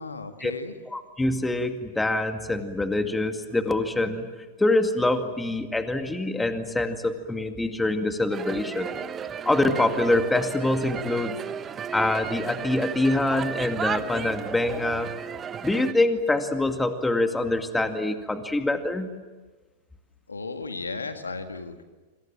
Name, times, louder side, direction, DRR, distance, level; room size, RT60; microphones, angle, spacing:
voice 1, 0.0-0.7 20.3-21.8, left 3 dB, 80° left, 8 dB, 1.9 m, -35 dB
voice 2, 0.9-4.3 4.6-8.9 9.4-11.4 11.9-15.1 15.6-19.1, left 2 dB, 10° left, 7 dB, 2.2 m, -25 dB
sound 1, 8.3-15.9, right 7 dB, 25° right, 1.0 m, -34 dB
28.5 x 26.5 x 7.6 m, 1.2 s
figure-of-eight pair, 95°, 0 cm